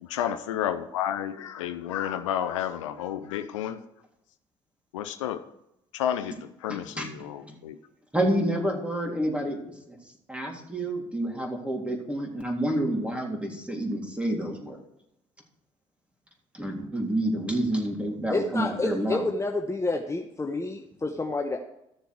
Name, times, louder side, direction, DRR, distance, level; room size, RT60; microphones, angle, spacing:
voice 1, 0.0-3.8 4.9-5.4 5.9-7.8, left 10 dB, 85° left, 10 dB, 0.6 m, -31 dB
voice 2, 6.7-7.6 8.1-9.6 9.9-10.0 10.3-14.8 16.5-19.2, right 1 dB, 5° right, 1 dB, 3.4 m, -29 dB
voice 3, 18.3-21.6, left 2 dB, 20° left, 2 dB, 1.1 m, -29 dB
14.0 x 6.9 x 4.7 m, 0.81 s
hypercardioid pair, 55°, 16 cm